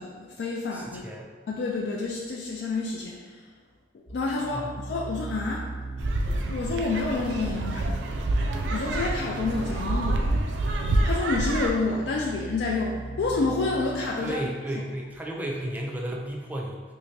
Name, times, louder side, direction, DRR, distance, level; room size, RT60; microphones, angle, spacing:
voice 1, 0.0-1.2 1.5-3.4 4.1-5.7 6.4-8.0 8.7-10.3 11.0-14.4, left 3 dB, 70° left, -2 dB, 0.3 m, -29 dB
voice 2, 0.7-1.3 4.5-4.7 14.2-16.8, right 1 dB, 10° right, -1 dB, 0.4 m, -33 dB
sound 1, 4.1-14.3, right 3 dB, 35° left, 1.0 m, -40 dB
sound 2, 6.0-11.7, right 2 dB, 80° right, 0.4 m, -27 dB
3.2 x 2.7 x 3.1 m, 1.4 s
head